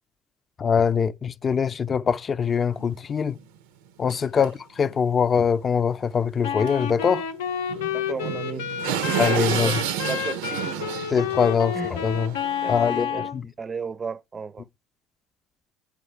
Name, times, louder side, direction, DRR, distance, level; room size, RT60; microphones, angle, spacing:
voice 1, 0.6-3.4 4.0-7.2 9.2-9.8 11.1-12.4 12.7-13.1 13.3-13.4, left 6 dB, 40° left, 0.5 m, -23 dB
sound 1, 2.7-2.8 3.3-3.4 4.1-4.2 4.4-4.5 4.8-5.0 6.7-6.8 7.0-7.1 7.7-13.0, right 10 dB, 85° right, 0.6 m, -30 dB
Wind instrument woodwind instrument, 6.4-13.4, left 8 dB, 90° left, 0.6 m, -30 dB
voice 2, 7.9-9.8 10.1-11.2 11.7-11.9 12.6-13.3 13.6-14.7, right 5 dB, 30° right, 0.5 m, -35 dB
8.8 x 4.7 x 4.4 m
hypercardioid pair, 75°, 0 cm